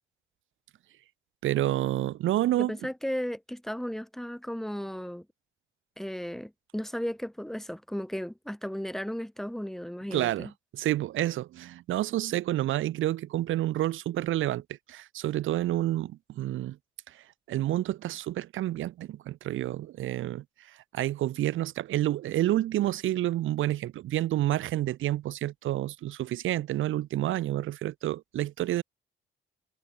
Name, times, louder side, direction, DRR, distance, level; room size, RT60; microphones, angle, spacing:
voice 1, 1.4-2.8 10.1-16.8 17.1-28.8, right 14 dB, 80° right, 3.3 m, -29 dB
voice 2, 2.6-5.3 6.0-10.5, equal, ahead, 3.9 m, -35 dB
cardioid pair, 90°, 20 cm